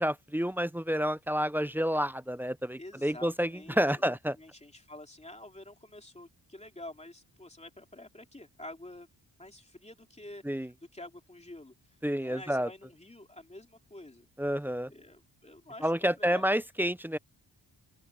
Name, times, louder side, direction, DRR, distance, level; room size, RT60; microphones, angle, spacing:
voice 1, 0.0-4.3 10.5-10.7 12.0-12.7 14.4-14.9 15.8-17.2, equal, 5° right, 0.4 m, -29 dB
voice 2, 2.7-9.1 9.4-11.7 12.2-14.3 14.9-16.6, left 1 dB, 15° left, 3.0 m, -48 dB
open air
cardioid pair, 95°, 43 cm